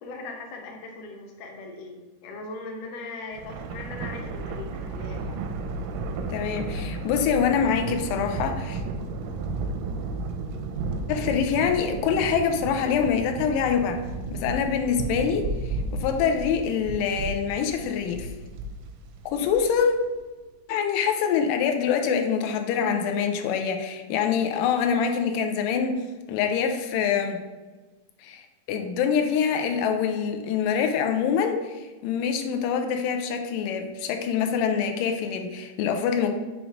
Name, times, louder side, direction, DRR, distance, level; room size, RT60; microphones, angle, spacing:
voice 1, 0.0-5.3, left 3 dB, 65° left, 1 dB, 1.8 m, -39 dB
Thunder, 3.3-19.9, right 3 dB, 85° right, 2.2 m, -33 dB
voice 2, 6.3-8.8 11.1-14.0 14.3-18.3 19.3-20.0 20.7-27.4 28.2-36.3, left 7 dB, 90° left, 5 dB, 2.2 m, -25 dB
6.5 x 3.0 x 4.9 m, 1.2 s
omnidirectional pair, 3.7 m